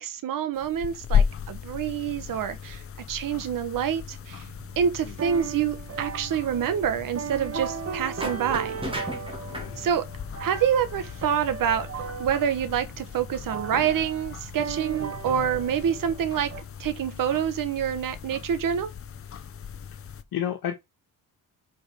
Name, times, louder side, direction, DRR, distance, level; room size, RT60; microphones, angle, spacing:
voice 1, 0.0-2.8 3.1-4.5 4.8-8.8 9.8-10.1 10.4-11.9 12.2-16.5 16.8-18.9, right 8 dB, 65° right, 1.1 m, -27 dB
sound 1, 0.6-20.2, left 8 dB, 40° left, 0.8 m, -35 dB
sound 2, 4.0-16.6, right 6 dB, 40° right, 1.5 m, -37 dB
sound 3, 8.2-9.7, right 1 dB, 15° right, 2.0 m, -34 dB
voice 2, 9.5-9.9 20.3-20.8, left 10 dB, 75° left, 1.5 m, -31 dB
5.3 x 5.1 x 6.0 m
cardioid pair, 155°, 36 cm